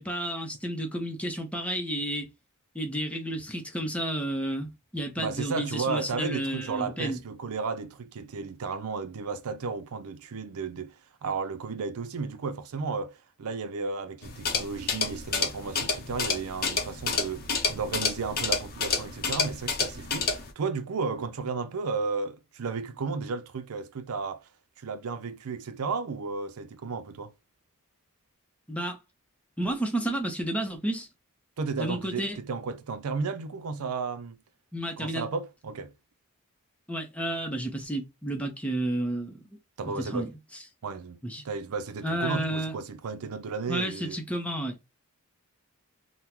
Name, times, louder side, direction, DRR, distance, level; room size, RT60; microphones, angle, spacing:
voice 1, 0.0-2.3 2.7-7.2 28.7-29.0 29.6-31.1 31.7-32.4 34.7-35.3 36.9-39.4 39.8-40.3 41.2-41.4 42.0-42.7 43.7-44.7, right 1 dB, 5° left, 0.7 m, -31 dB
voice 2, 5.2-10.9 11.2-24.4 24.8-27.3 31.6-34.4 35.0-35.9 39.8-40.3 40.8-41.2 41.4-44.2, right 4 dB, 85° right, 0.5 m, -33 dB
sound 1, 14.2-20.5, left 5 dB, 45° left, 0.6 m, -30 dB
3.6 x 2.1 x 2.9 m
head